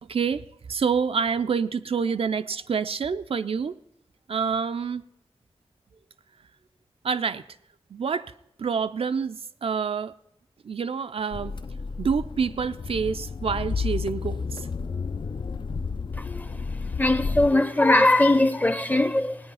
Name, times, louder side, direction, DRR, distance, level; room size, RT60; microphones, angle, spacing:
voice 1, 0.0-3.7 4.3-5.1 7.0-7.4 7.9-8.3 8.6-10.1 10.6-11.5 12.0-14.7, right 6 dB, 65° right, 0.4 m, -27 dB
sound 1, 11.3-17.5, left 5 dB, 50° left, 0.4 m, -31 dB
voice 2, 16.2-16.5 17.0-19.4, left 2 dB, 15° left, 0.7 m, -20 dB
17.5 x 9.5 x 5.5 m
wide cardioid pair, 80°, 10 cm